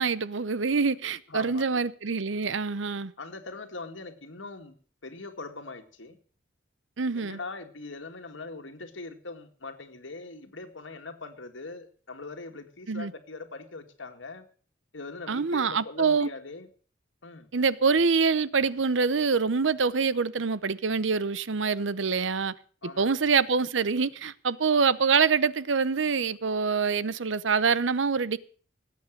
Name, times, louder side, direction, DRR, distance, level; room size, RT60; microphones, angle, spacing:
voice 1, 0.0-3.1 7.0-7.4 12.9-13.1 15.3-16.3 17.5-22.5 23.0-28.4, right 5 dB, 80° right, 0.8 m, -25 dB
voice 2, 1.3-1.8 3.2-4.8 5.0-6.2 7.1-14.5 14.9-16.7 17.2-17.5 22.8-23.3 24.7-24.8, left 3 dB, 90° left, 2.1 m, -41 dB
18.5 x 8.7 x 6.5 m
head